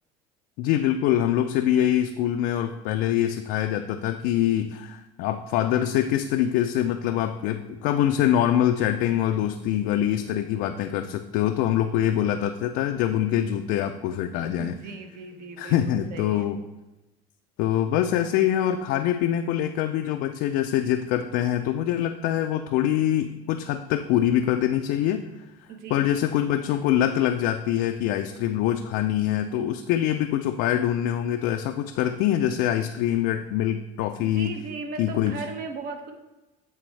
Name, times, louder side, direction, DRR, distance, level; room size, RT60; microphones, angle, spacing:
voice 1, 0.6-14.8 15.6-16.6 17.6-25.3 25.9-34.6 35.0-35.4, left 11 dB, 70° left, 5 dB, 0.4 m, -24 dB
voice 2, 14.6-16.5 25.7-26.1 34.2-36.1, right 3 dB, 55° right, 5 dB, 1.0 m, -37 dB
8.5 x 3.5 x 3.2 m, 1.0 s
supercardioid pair, 95°, 17 cm